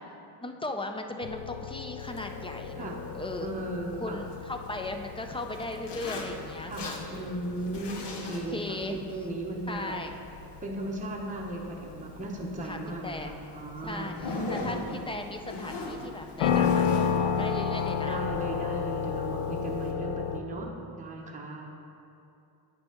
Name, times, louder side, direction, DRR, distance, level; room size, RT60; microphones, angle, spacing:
voice 1, 0.4-2.9 3.1-3.5 4.0-7.4 8.5-9.0 9.7-10.2 12.6-13.3 13.8-18.2, left 2 dB, 10° left, 5 dB, 0.4 m, -37 dB
sound 1, 1.2-20.4, left 7 dB, 90° left, 0.6 m, -33 dB
Zipper (clothing), 2.0-19.9, left 2 dB, 60° left, 1.0 m, -42 dB
voice 2, 3.4-4.2 6.6-9.9 10.6-14.1 14.7-14.8 18.1-20.7 21.0-21.7, right 2 dB, 15° right, -3 dB, 0.9 m, -36 dB
9.0 x 5.3 x 3.0 m, 2.6 s
cardioid pair, 85°, 48 cm